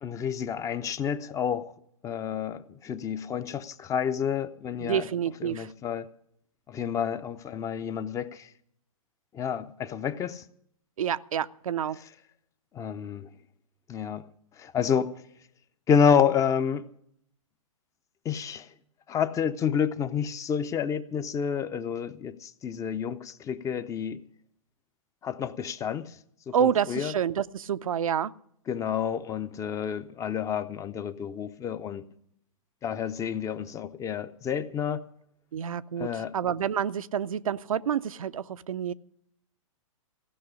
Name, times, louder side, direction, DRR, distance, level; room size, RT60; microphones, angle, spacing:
voice 1, 0.0-1.7 2.0-5.1 5.4-6.1 6.7-8.5 9.3-10.4 12.7-13.3 13.9-14.3 14.6-15.1 15.9-16.9 18.2-18.7 19.1-24.2 25.2-26.2 26.5-27.1 28.7-32.0 32.8-35.0 36.0-36.3, left 7 dB, 20° left, 0.6 m, -29 dB
voice 2, 4.8-5.7 11.0-12.0 26.5-28.3 35.5-38.9, right 8 dB, 80° right, 0.6 m, -28 dB
15.5 x 6.0 x 10.0 m
hypercardioid pair, 125°, 18 cm